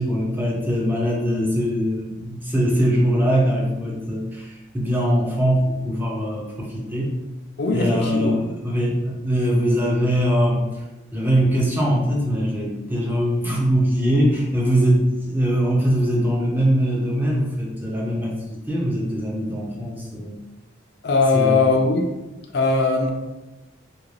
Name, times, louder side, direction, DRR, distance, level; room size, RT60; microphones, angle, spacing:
voice 1, 0.0-7.1 7.7-10.8 11.1-20.4 21.3-21.8, equal, 10° right, -3 dB, 0.5 m, -22 dB
voice 2, 7.6-8.5 21.0-22.1 22.5-23.1, left 3 dB, 55° left, 2 dB, 0.4 m, -20 dB
2.8 x 2.5 x 3.2 m, 1.0 s
head